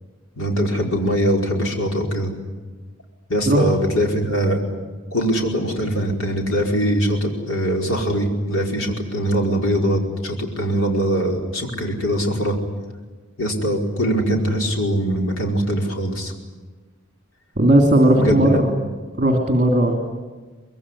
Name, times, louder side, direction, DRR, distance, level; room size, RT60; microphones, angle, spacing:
voice 1, 0.4-2.3 3.3-4.6 5.1-12.6 13.4-16.3 18.1-18.6, equal, 85° left, 1 dB, 5.0 m, -22 dB
voice 2, 17.6-18.6 19.2-19.9, right 1 dB, 40° right, 3 dB, 3.0 m, -16 dB
24.5 x 22.0 x 10.0 m, 1.4 s
head